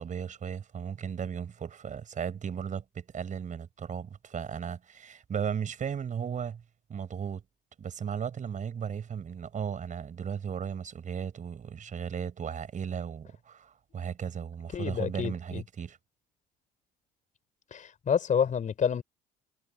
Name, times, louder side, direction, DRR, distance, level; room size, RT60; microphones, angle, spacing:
voice 1, 0.0-6.6 6.9-7.4 7.8-16.0, right 7 dB, 40° right, 4.9 m, -36 dB
voice 2, 14.7-15.6 17.7-19.0, left 7 dB, 40° left, 3.9 m, -28 dB
hypercardioid pair, 60°, 20 cm